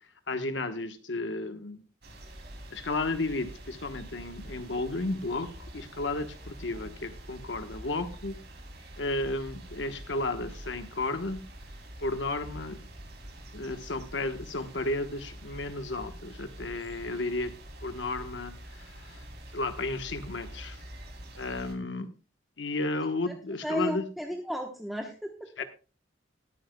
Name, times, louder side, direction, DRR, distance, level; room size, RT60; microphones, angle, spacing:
voice 1, 0.3-1.8 2.7-8.4 9.0-11.4 12.0-12.8 13.5-17.5 17.8-19.3 19.5-20.8 21.3-22.1 22.6-24.0 25.6-25.7, left 2 dB, 70° left, 8 dB, 1.1 m, -33 dB
sound 1, 2.0-21.8, right 1 dB, 55° right, 2.8 m, -46 dB
voice 2, 23.6-25.6, equal, ahead, 2 dB, 1.0 m, -33 dB
20.0 x 9.0 x 2.2 m, 0.34 s
head